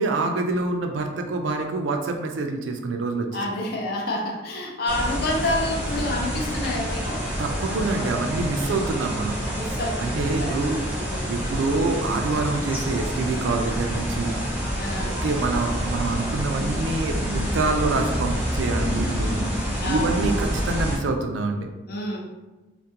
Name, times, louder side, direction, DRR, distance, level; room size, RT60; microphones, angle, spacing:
voice 1, 0.0-3.4 7.4-9.4 10.0-10.8 11.2-14.4 15.0-19.3 19.9-21.7, right 3 dB, 85° right, 5 dB, 0.3 m, -26 dB
voice 2, 3.3-7.3 8.6-8.9 9.5-11.3 14.8-15.2 19.8-20.3 21.9-22.2, left 1 dB, 55° left, 0 dB, 0.5 m, -29 dB
sound 1, 4.9-21.0, equal, 10° right, 0.4 m, -27 dB
2.3 x 2.1 x 2.7 m, 1.1 s
head